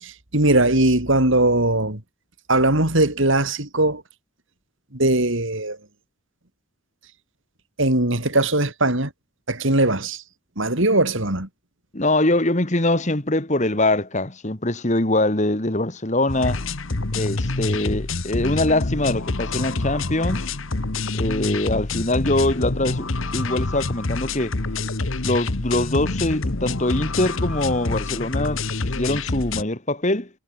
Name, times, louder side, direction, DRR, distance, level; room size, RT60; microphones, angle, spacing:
voice 1, 0.0-2.0 2.5-4.0 4.9-5.8 7.8-9.1 9.5-10.2 10.6-11.5, right 2 dB, 60° right, 3.8 m, -20 dB
voice 2, 11.9-16.6 17.2-20.5 21.1-24.6 25.2-30.3, left 2 dB, 35° left, 1.9 m, -23 dB
sound 1, 16.3-29.6, left 3 dB, 65° left, 1.4 m, -27 dB
head